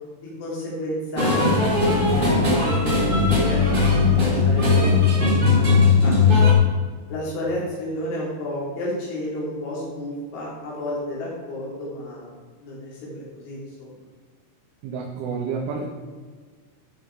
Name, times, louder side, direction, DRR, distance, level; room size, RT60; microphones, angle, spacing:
voice 1, 0.4-6.5 7.1-12.3 12.6-13.9, left 1 dB, 80° left, -6 dB, 5.7 m, -32 dB
sound 1, 1.1-6.5, left 4 dB, 40° right, 0.7 m, -18 dB
voice 2, 14.8-15.8, right 5 dB, 85° right, -1 dB, 3.6 m, -29 dB
14.0 x 5.9 x 4.8 m, 1.5 s
omnidirectional pair, 5.4 m